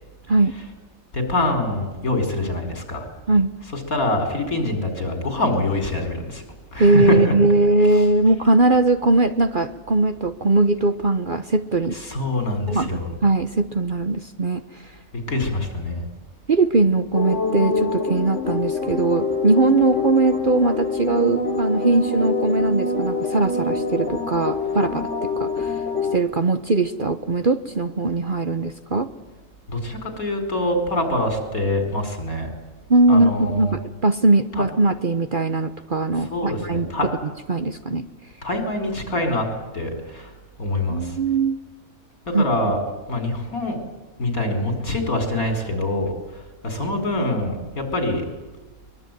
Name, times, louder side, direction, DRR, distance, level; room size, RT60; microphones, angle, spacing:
voice 1, 1.1-3.1 3.7-6.4 6.7-7.3 7.9-8.0 11.9-13.1 15.3-16.0 29.7-32.5 33.1-33.7 34.6-34.7 36.3-37.1 38.4-39.5 39.7-40.3 40.6-41.2 42.3-42.8 43.1-43.8 44.2-48.2, left 1 dB, 70° left, 6 dB, 5.0 m, -25 dB
voice 2, 6.8-12.0 12.7-14.8 16.5-25.8 26.1-29.1 32.9-37.1 37.5-38.1 40.9-41.6 42.3-42.4, right 2 dB, 40° right, 10 dB, 1.0 m, -20 dB
sound 1, 17.1-26.2, left 3 dB, 55° left, 3.1 m, -25 dB
23.0 x 21.5 x 9.2 m, 1.2 s
omnidirectional pair, 1.5 m